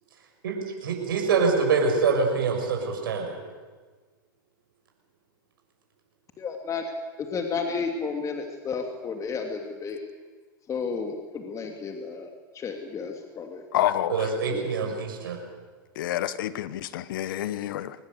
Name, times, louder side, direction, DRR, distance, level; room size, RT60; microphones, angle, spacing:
voice 1, 0.8-3.4 14.1-15.4, right 5 dB, 80° right, 2 dB, 6.7 m, -25 dB
voice 2, 6.4-6.9 7.3-10.0 10.7-13.6 14.5-14.7, left 5 dB, 30° left, 3 dB, 2.8 m, -32 dB
voice 3, 13.7-14.2 16.0-17.9, left 12 dB, 70° left, 15 dB, 1.2 m, -28 dB
24.5 x 19.5 x 8.0 m, 1.4 s
hypercardioid pair, 105°, 12 cm